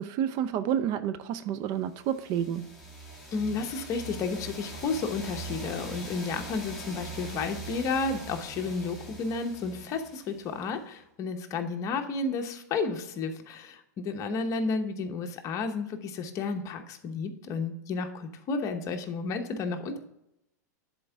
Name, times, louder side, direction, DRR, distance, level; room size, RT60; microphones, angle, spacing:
voice 1, 0.0-2.7, right 9 dB, 45° right, 0.5 m, -30 dB
sound 1, 2.0-10.7, right 1 dB, ahead, 2.2 m, -42 dB
voice 2, 3.3-20.0, left 4 dB, 35° left, 1.0 m, -32 dB
10.5 x 4.5 x 3.5 m
hypercardioid pair, 125°, 10 cm